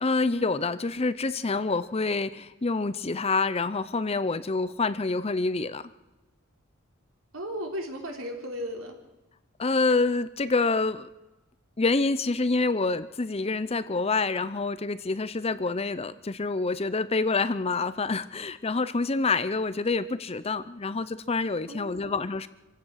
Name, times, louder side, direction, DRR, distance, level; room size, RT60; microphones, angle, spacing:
voice 1, 0.0-5.8 9.6-11.1 11.8-22.5, left 3 dB, 30° left, 14 dB, 0.6 m, -27 dB
voice 2, 7.3-8.9 21.7-22.2, equal, 70° right, 2 dB, 3.6 m, -35 dB
26.5 x 16.0 x 6.5 m, 1.0 s
head